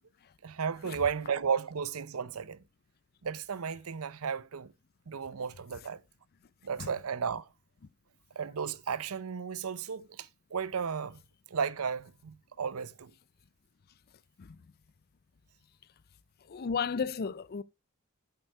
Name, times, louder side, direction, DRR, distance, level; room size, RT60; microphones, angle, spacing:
voice 1, 0.4-2.6 3.2-4.7 5.1-6.0 6.6-7.5 8.4-11.2 11.5-13.1, right 6 dB, 90° right, 0.7 m, -34 dB
voice 2, 16.5-17.6, left 6 dB, 45° left, 0.4 m, -33 dB
8.2 x 8.0 x 4.7 m
head